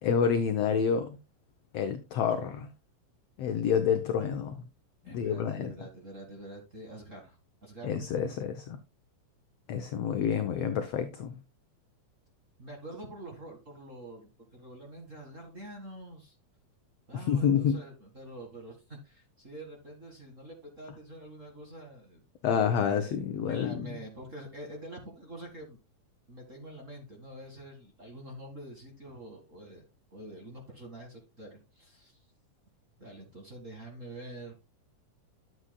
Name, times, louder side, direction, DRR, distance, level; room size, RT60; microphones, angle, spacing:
voice 1, 0.0-1.2 1.7-2.7 3.4-4.6 5.1-5.7 7.8-8.8 9.7-11.3 17.3-17.8 22.4-23.9, left 7 dB, 75° left, 1.4 m, -28 dB
voice 2, 5.0-7.9 12.6-16.3 17.1-22.2 22.5-25.8 26.3-29.8 30.1-32.2 33.0-34.5, right 1 dB, 30° right, 1.5 m, -46 dB
11.5 x 7.8 x 2.2 m
omnidirectional pair, 3.7 m